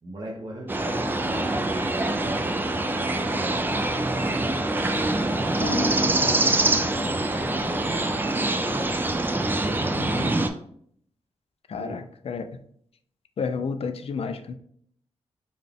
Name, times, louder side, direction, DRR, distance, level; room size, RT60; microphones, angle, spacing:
voice 1, 0.0-1.5 2.0-4.6 5.6-8.9 9.5-10.2 11.7-12.0, right 1 dB, 35° right, -2 dB, 0.7 m, -39 dB
sound 1, 0.7-10.5, right 2 dB, 15° right, 0.3 m, -25 dB
voice 2, 5.6-5.9 10.2-10.3 11.7-12.5 13.4-14.5, left 5 dB, 55° left, 8 dB, 0.4 m, -31 dB
3.9 x 2.3 x 3.4 m, 0.63 s
wide cardioid pair, 140°, 12 cm